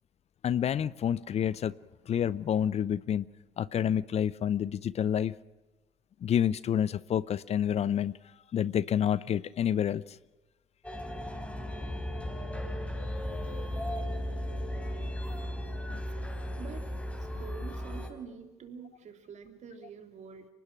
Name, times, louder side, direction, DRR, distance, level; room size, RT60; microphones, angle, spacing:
voice 1, 0.4-1.7 2.1-3.2 3.6-5.3 6.2-8.1 8.5-10.0 15.9-16.0, left 9 dB, 50° left, 20 dB, 0.7 m, -28 dB
sound 1, 10.8-18.1, equal, 10° left, 4.5 m, -35 dB
voice 2, 16.6-16.9 17.2-20.5, right 6 dB, 55° right, 6 dB, 3.2 m, -46 dB
24.5 x 19.5 x 6.1 m, 1.1 s
hypercardioid pair, 60°, 14 cm